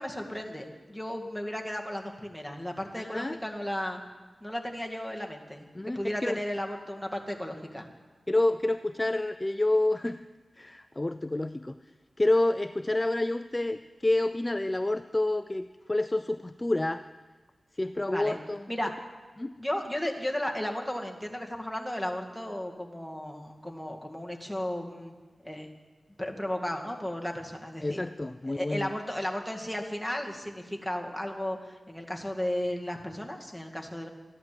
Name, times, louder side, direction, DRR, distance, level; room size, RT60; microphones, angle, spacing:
voice 1, 0.0-4.0 4.4-7.9 18.1-18.4 18.7-18.9 19.6-25.1 25.4-25.7 26.2-34.1, left 1 dB, ahead, 1 dB, 2.0 m, -34 dB
voice 2, 3.0-3.4 5.7-6.4 8.3-10.3 10.6-11.8 12.2-17.0 17.8-18.6 19.4-19.5 27.8-28.9, left 2 dB, 25° left, 11 dB, 0.4 m, -28 dB
14.0 x 11.0 x 7.7 m, 1.3 s
wide cardioid pair, 70°, 0 cm